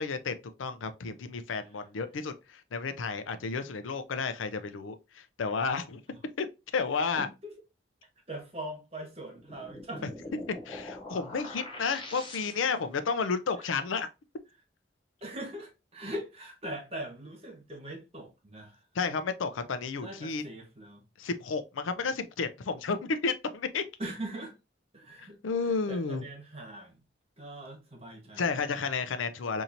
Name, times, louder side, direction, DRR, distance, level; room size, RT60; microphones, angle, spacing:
voice 1, 0.0-6.0 6.4-6.5 6.7-7.3 10.0-10.1 10.7-14.1 18.9-20.4 21.2-23.8 25.4-26.2 28.4-29.6, left 4 dB, 90° left, 0.5 m, -32 dB
voice 2, 7.1-7.5 8.3-10.1 13.6-13.7 15.2-18.8 20.0-21.0 24.0-24.6 24.9-25.4 25.9-27.0 27.4-28.7, right 1 dB, 30° right, 1.2 m, -41 dB
sound 1, 9.3-12.9, left 2 dB, 25° left, 0.7 m, -44 dB
4.3 x 2.7 x 2.6 m
head